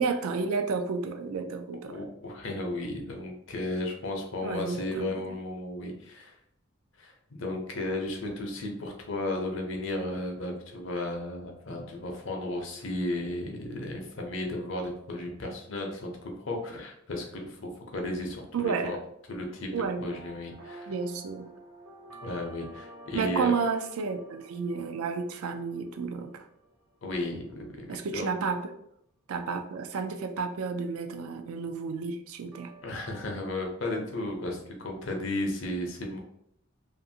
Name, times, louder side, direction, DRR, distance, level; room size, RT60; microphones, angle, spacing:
voice 1, 0.0-2.0 4.4-5.2 18.5-19.0 19.6-20.2 20.9-21.5 23.1-26.4 27.9-28.7 29.3-32.7, right 5 dB, 90° right, 7 dB, 0.4 m, -31 dB
voice 2, 1.9-6.3 7.0-19.0 19.3-19.7 20.0-20.9 22.2-23.5 27.0-27.9 28.1-28.3 32.8-36.2, left 1 dB, 60° left, 2 dB, 0.6 m, -34 dB
sound 1, 19.9-27.1 32.5-33.4, right 2 dB, 70° right, 0.8 m, -50 dB
2.6 x 2.5 x 2.7 m, 0.74 s
head